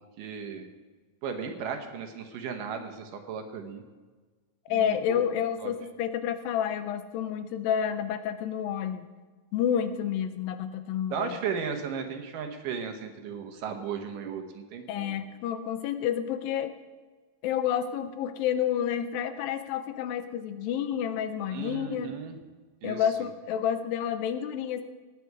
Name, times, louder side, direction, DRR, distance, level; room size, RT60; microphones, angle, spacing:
voice 1, 0.2-0.6 1.2-3.8 4.7-5.2 5.6-5.7 11.1-15.1 21.5-22.4 22.8-23.0, right 6 dB, 70° right, 6 dB, 2.5 m, -35 dB
voice 2, 4.7-9.1 9.5-11.4 14.9-16.7 17.4-22.1 22.8-24.8, left 9 dB, 85° left, 10 dB, 2.4 m, -29 dB
17.5 x 9.3 x 4.7 m, 1.4 s
omnidirectional pair, 4.2 m